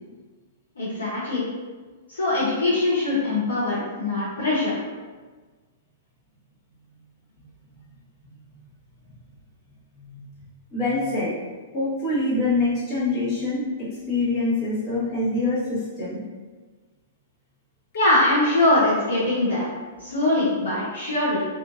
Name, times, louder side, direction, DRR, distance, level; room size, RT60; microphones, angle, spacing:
voice 1, 0.8-1.4 2.1-4.7 17.9-19.7 20.0-21.4, left 2 dB, 70° left, -10 dB, 0.7 m, -22 dB
voice 2, 9.9-10.4 10.7-11.3 11.7-16.2, left 2 dB, 30° left, -11 dB, 1.2 m, -25 dB
3.0 x 2.4 x 2.4 m, 1.4 s
figure-of-eight pair, 105°, 0 cm